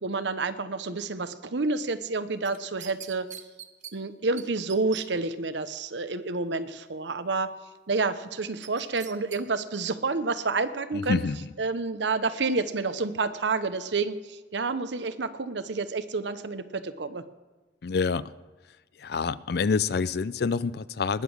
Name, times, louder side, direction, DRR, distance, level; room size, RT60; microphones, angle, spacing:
voice 1, 0.0-3.3 3.9-7.5 7.9-11.2 11.6-17.2, right 3 dB, 75° right, 12 dB, 0.9 m, -29 dB
sound 1, 2.4-3.9 4.4-4.5 4.7-5.0 8.6-9.4 9.8-9.9, right 10 dB, 40° right, 0.8 m, -42 dB
voice 2, 10.9-11.5 17.8-18.3 19.0-21.2, left 5 dB, 60° left, 18 dB, 0.4 m, -27 dB
20.0 x 7.3 x 6.4 m, 1.3 s
head